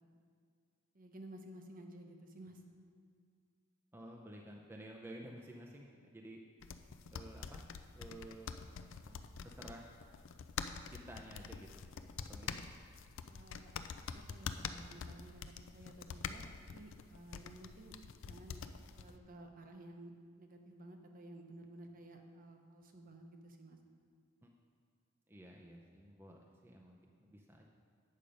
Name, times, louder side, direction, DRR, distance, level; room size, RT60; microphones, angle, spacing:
voice 1, 0.9-2.6 13.3-16.5 16.7-18.6 18.9-20.1 20.4-23.8, right 1 dB, 40° right, 4 dB, 0.8 m, -54 dB
voice 2, 3.9-6.4 7.1-7.6 7.9-9.9 10.9-11.9 12.3-12.7 24.4-24.5 25.3-27.7, right 1 dB, 10° right, -1 dB, 0.5 m, -53 dB
sound 1, 6.6-19.2, left 6 dB, 65° left, 0.4 m, -46 dB
8.6 x 6.5 x 5.1 m, 2.1 s
head